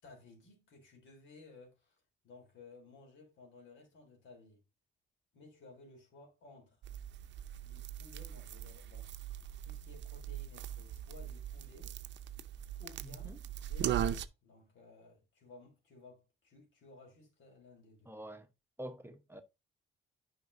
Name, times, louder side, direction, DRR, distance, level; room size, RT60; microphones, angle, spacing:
voice 1, 0.0-4.6 5.3-6.8 7.6-9.3 9.6-12.0 12.8-18.1, left 3 dB, 75° left, 3.5 m, -57 dB
sound 1, 6.8-14.3, right 10 dB, 65° right, 0.6 m, -40 dB
voice 2, 13.0-13.4 18.1-18.5 18.8-19.4, equal, 10° right, 1.0 m, -46 dB
9.2 x 5.1 x 2.6 m
cardioid pair, 90°, 20 cm